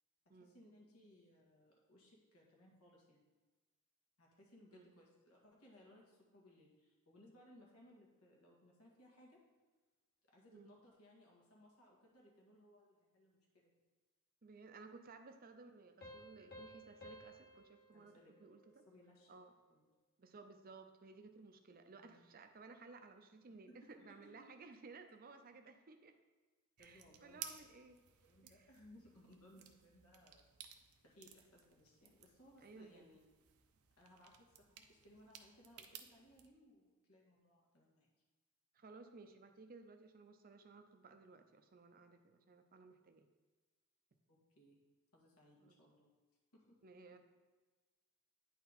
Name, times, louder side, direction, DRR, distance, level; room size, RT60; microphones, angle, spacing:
voice 1, 0.3-3.3 4.2-9.4 10.3-13.7 17.9-18.3 18.7-19.4 19.7-19.9 22.0-22.3 23.7-24.5 26.8-27.8 28.2-30.5 31.0-33.2 34.0-38.1 44.3-44.8 45.1-46.1 46.5-46.8 47.1-47.2, left 1 dB, 80° left, -2 dB, 1.9 m, -65 dB
voice 2, 4.7-5.0 10.5-10.8 14.4-18.8 19.3-19.5 20.2-26.2 26.8-28.0 28.4-28.7 32.6-33.1 38.7-43.3 45.6-45.8 46.8-47.2, right 4 dB, 40° right, 7 dB, 0.5 m, -58 dB
Piano, 16.0-19.3, equal, 45° left, 1.1 m, -57 dB
sound 1, 26.8-36.5, right 9 dB, 80° right, 0.6 m, -57 dB
9.2 x 4.4 x 4.1 m, 1.3 s
head